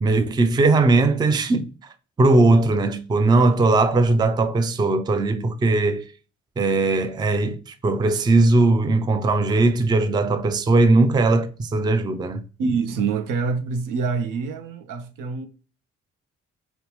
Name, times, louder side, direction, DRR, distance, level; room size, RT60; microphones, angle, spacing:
voice 1, 0.0-6.1 6.6-12.4, right 2 dB, 15° right, 0.4 m, -19 dB
voice 2, 12.6-15.5, right 5 dB, 70° right, 0.6 m, -26 dB
2.8 x 2.0 x 3.0 m
hypercardioid pair, 50°, 34 cm